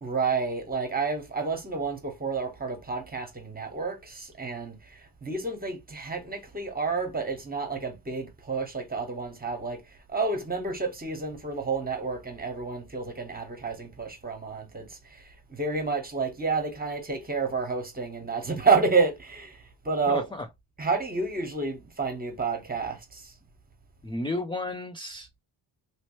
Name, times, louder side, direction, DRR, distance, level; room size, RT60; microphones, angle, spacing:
voice 1, 0.0-20.2 20.8-23.3, right 4 dB, 20° right, 1.2 m, -30 dB
voice 2, 20.1-20.5 24.0-25.4, left 2 dB, 10° left, 0.3 m, -33 dB
3.1 x 2.9 x 3.0 m
wide cardioid pair, 105°, 47 cm